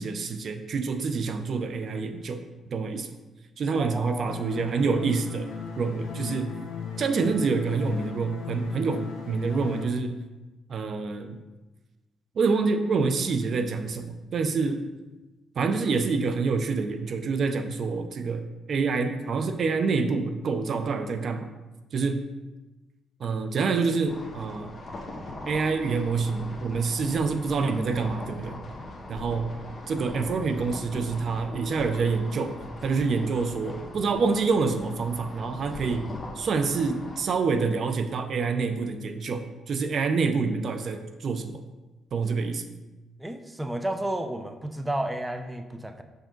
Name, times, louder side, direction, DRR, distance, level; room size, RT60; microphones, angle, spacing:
voice 1, 0.0-2.4 2.7-3.1 3.6-5.5 5.8-6.5 7.0-10.2 10.7-11.4 12.4-14.8 15.6-21.5 21.9-22.2 23.2-24.8 25.5-28.6 29.1-29.6 29.9-32.6 32.8-41.6 42.1-42.6, right 4 dB, 55° right, 8 dB, 0.6 m, -27 dB
voice 2, 3.7-4.4 43.2-46.0, right 1 dB, 10° right, 7 dB, 0.6 m, -32 dB
sound 1, 4.3-9.8, left 5 dB, 75° left, 1.5 m, -36 dB
sound 2, 24.1-37.2, left 2 dB, 30° left, 1.4 m, -40 dB
6.4 x 5.2 x 3.8 m, 1.1 s
cardioid pair, 90°, 0 cm